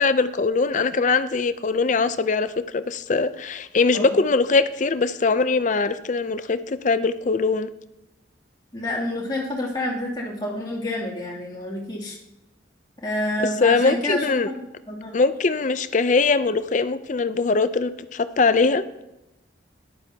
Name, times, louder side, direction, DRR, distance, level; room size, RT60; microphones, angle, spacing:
voice 1, 0.0-7.7 13.4-14.5 15.1-18.8, left 4 dB, 40° left, 12 dB, 0.5 m, -21 dB
voice 2, 8.7-12.2 13.0-14.5 14.9-15.2, left 1 dB, 25° left, -5 dB, 2.7 m, -28 dB
13.5 x 11.0 x 2.8 m, 0.93 s
head